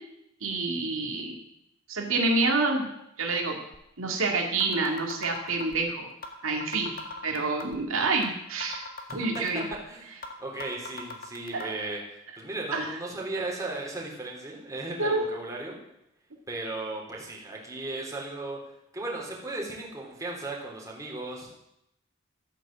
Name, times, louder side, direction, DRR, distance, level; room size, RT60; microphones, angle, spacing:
voice 1, 0.4-1.4 1.9-2.9 3.2-3.6 4.0-6.1 6.4-6.9 7.2-8.9 9.1-9.7 11.5-11.9 12.7-12.9 15.0-15.3, right 3 dB, 75° right, 2 dB, 2.1 m, -27 dB
sound 1, 3.7-3.8 4.2-4.3 4.6-5.8 6.2-6.3 6.6-7.8 8.2-8.3 8.6-9.8 10.2-10.3 10.6-11.6, left 3 dB, 45° left, 1.9 m, -39 dB
voice 2, 9.1-9.4 9.9-15.8 16.5-18.6 18.9-21.5, right 2 dB, 15° right, -2 dB, 3.5 m, -36 dB
13.5 x 9.0 x 7.5 m, 0.82 s
head